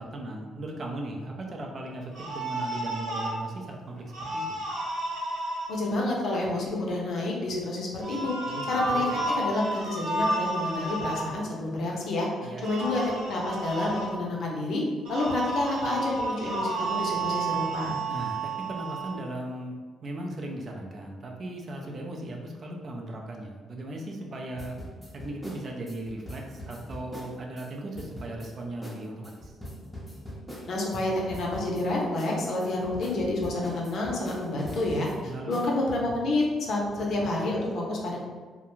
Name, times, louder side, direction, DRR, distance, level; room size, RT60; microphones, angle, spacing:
voice 1, 0.0-4.6 8.5-9.2 12.4-12.9 18.1-19.8 20.0-24.8 25.1-29.5 35.2-35.6, right 1 dB, 45° right, 1 dB, 0.4 m, -37 dB
sound 1, 2.1-3.3 4.1-5.7 8.0-11.2 12.6-14.1 15.0-19.1, right 2 dB, 90° right, 0.8 m, -31 dB
voice 2, 5.7-8.3 8.7-12.3 12.6-14.8 15.1-18.0 30.7-38.2, left 2 dB, 65° left, -2 dB, 0.6 m, -29 dB
sound 2, 24.6-27.7 27.9-28.5 28.8-29.0 29.2-31.0 31.3-31.8 32.2-35.1 35.5-35.7, equal, ahead, 0.6 m, -41 dB
2.4 x 2.1 x 3.0 m, 1.5 s
cardioid pair, 95°, 0 cm